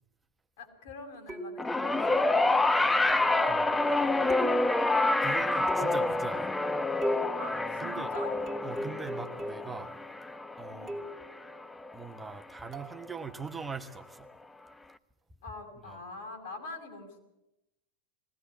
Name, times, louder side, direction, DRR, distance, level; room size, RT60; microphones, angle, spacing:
voice 1, 0.6-4.9 7.2-8.4 10.7-11.0 15.4-17.2, left 3 dB, 70° left, 4 dB, 5.7 m, -45 dB
sound 1, 1.3-1.8 3.1-3.4 4.3-4.9 5.7-6.2 7.0-7.5 8.1-9.8 10.9-11.3 12.7-13.0, right 1 dB, 30° right, 2.5 m, -37 dB
sound 2, 1.6-12.0 13.1-13.2, left 2 dB, 10° left, 0.7 m, -28 dB
voice 2, 5.2-6.5 7.8-8.1 8.6-9.9 10.6-10.9 11.9-14.3 15.9-16.0, right 5 dB, 15° right, 6 dB, 1.3 m, -41 dB
21.0 x 16.5 x 8.8 m, 0.89 s
hypercardioid pair, 100°, 0 cm